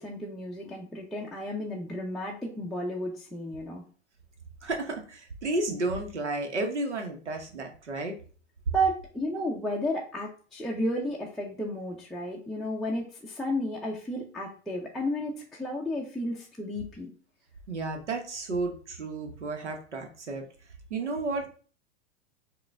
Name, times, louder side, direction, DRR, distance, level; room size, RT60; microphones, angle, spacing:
voice 1, 0.0-3.8 8.7-17.1, equal, ahead, -3 dB, 0.5 m, -32 dB
voice 2, 4.6-8.1 17.7-20.4 20.9-21.5, right 2 dB, 90° right, 3 dB, 1.0 m, -32 dB
4.9 x 2.4 x 3.3 m, 0.41 s
hypercardioid pair, 100°, 34 cm